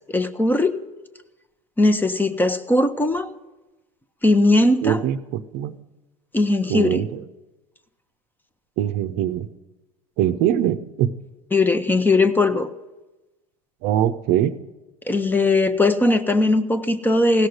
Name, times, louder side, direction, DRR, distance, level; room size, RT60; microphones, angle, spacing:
voice 1, 0.1-0.8 1.8-3.3 4.2-5.0 6.3-7.0 11.5-12.7 15.1-17.5, left 2 dB, 10° left, 11 dB, 0.8 m, -19 dB
voice 2, 4.8-5.8 6.7-7.2 8.8-9.5 10.2-11.1 13.8-14.6, right 11 dB, 55° right, 10 dB, 0.7 m, -22 dB
16.5 x 6.4 x 9.6 m, 1.1 s
hypercardioid pair, 85°, 18 cm